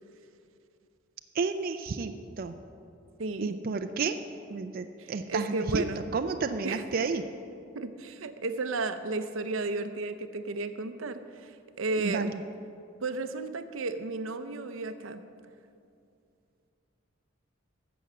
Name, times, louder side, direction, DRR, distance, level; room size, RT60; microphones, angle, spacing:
voice 1, 1.4-2.1 2.4-2.5 3.4-4.1 4.5-5.8 6.1-7.2 12.0-12.3, right 4 dB, 50° right, 7 dB, 0.4 m, -31 dB
voice 2, 3.2-3.6 5.0-6.0 6.6-6.8 7.7-12.3 13.0-15.2, right 3 dB, 85° right, 10 dB, 0.7 m, -33 dB
10.5 x 7.1 x 7.3 m, 2.5 s
head